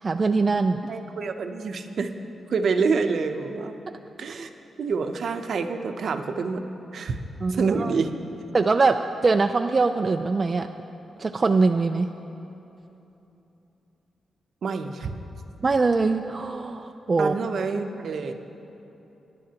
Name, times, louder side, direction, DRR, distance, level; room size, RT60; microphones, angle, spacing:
voice 1, 0.0-0.8 4.4-4.5 7.4-7.9 8.5-10.7 11.2-12.1 15.6-17.3, right 3 dB, 30° right, 6 dB, 0.3 m, -22 dB
voice 2, 0.9-2.1 2.5-3.8 4.2-4.5 4.8-6.6 6.9-7.2 7.5-8.1 14.6-15.1 17.2-18.3, right 4 dB, 60° right, 6 dB, 0.7 m, -27 dB
20.5 x 10.5 x 2.9 m, 3.0 s
wide cardioid pair, 125°, 0 cm